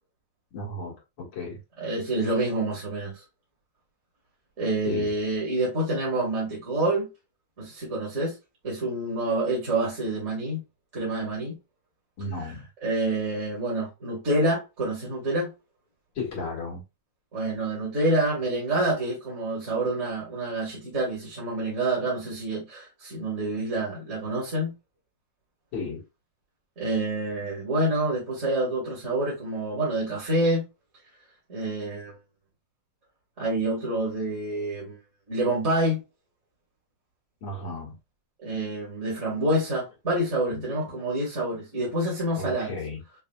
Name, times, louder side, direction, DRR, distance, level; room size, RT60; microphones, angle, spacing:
voice 1, 0.5-1.6 4.8-5.1 12.2-12.7 16.1-16.8 25.7-26.0 37.4-38.0 40.5-40.6 42.4-43.0, left 3 dB, 80° left, 2.4 m, -34 dB
voice 2, 1.8-3.2 4.6-7.1 7.6-8.3 8.6-10.6 10.9-11.6 12.8-15.5 17.3-24.7 26.8-30.6 31.5-32.1 33.4-35.0 35.3-36.0 38.4-42.7, right 1 dB, 40° right, 2.1 m, -27 dB
5.9 x 2.8 x 2.2 m
omnidirectional pair, 2.0 m